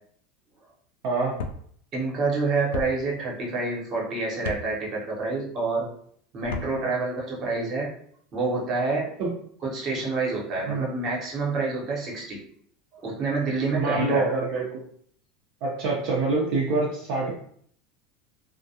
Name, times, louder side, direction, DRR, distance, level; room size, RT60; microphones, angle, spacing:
voice 1, 1.0-1.4 6.7-6.9 9.2-9.3 10.7-10.9 13.8-14.8 15.6-17.3, right 3 dB, 60° right, -4 dB, 0.5 m, -26 dB
sound 1, 1.4-1.6 2.7-2.9 4.4-4.6 6.4-6.7, left 4 dB, 90° left, 0.3 m, -32 dB
voice 2, 1.9-5.9 6.3-7.9 8.3-9.1 9.6-12.4 12.9-14.6, right 3 dB, 40° right, -2 dB, 0.9 m, -28 dB
2.3 x 2.1 x 2.7 m, 0.63 s
supercardioid pair, 125°, 0 cm